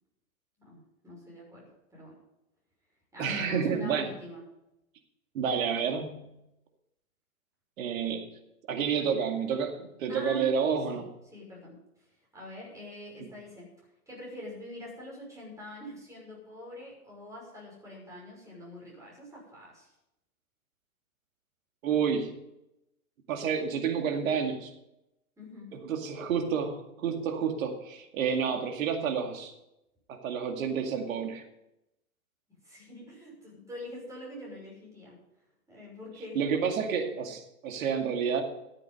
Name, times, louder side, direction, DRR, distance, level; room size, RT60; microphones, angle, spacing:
voice 1, 0.6-2.2 3.1-4.4 10.1-10.5 10.9-11.1 11.3-11.8 12.3-13.7 14.1-19.9 25.4-25.8 32.6-35.2 35.7-36.4, left 1 dB, 5° right, -4 dB, 6.1 m, -44 dB
voice 2, 3.2-4.1 5.3-6.2 7.8-8.3 8.7-11.1 13.2-13.3 21.8-22.4 23.3-24.7 25.7-29.5 30.1-31.4 36.3-38.4, right 6 dB, 65° right, 4 dB, 2.4 m, -29 dB
14.0 x 8.4 x 5.5 m, 0.87 s
hypercardioid pair, 125°, 44 cm